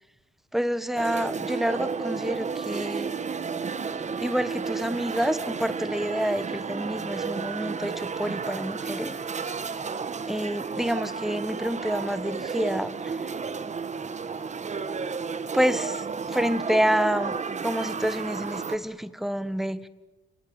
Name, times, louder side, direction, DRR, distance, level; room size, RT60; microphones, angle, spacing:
voice 1, 0.5-3.2 4.2-9.2 10.3-13.2 15.5-19.9, equal, ahead, 14 dB, 1.4 m, -28 dB
sound 1, 1.0-18.8, right 5 dB, 35° right, 1.9 m, -32 dB
29.0 x 20.0 x 8.9 m, 1.2 s
cardioid pair, 90°, 20 cm